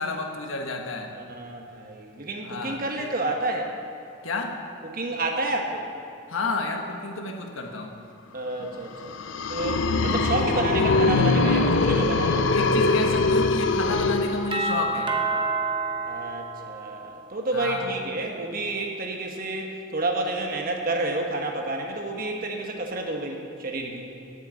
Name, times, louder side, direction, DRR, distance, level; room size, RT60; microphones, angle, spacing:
voice 1, 0.0-1.1 2.4-3.1 4.2-4.6 6.3-8.0 8.6-8.8 10.4-10.9 12.5-15.1 17.5-17.9, left 3 dB, 85° left, 2 dB, 1.3 m, -31 dB
voice 2, 1.1-3.7 4.8-5.8 8.3-9.2 9.5-12.5 16.1-24.1, right 2 dB, 45° right, 2 dB, 1.2 m, -30 dB
sound 1, 9.0-14.9, left 3 dB, 65° left, 0.5 m, -22 dB
Doorbell, 14.5-17.3, right 3 dB, 25° right, 0.8 m, -28 dB
9.2 x 8.0 x 7.9 m, 2.5 s
head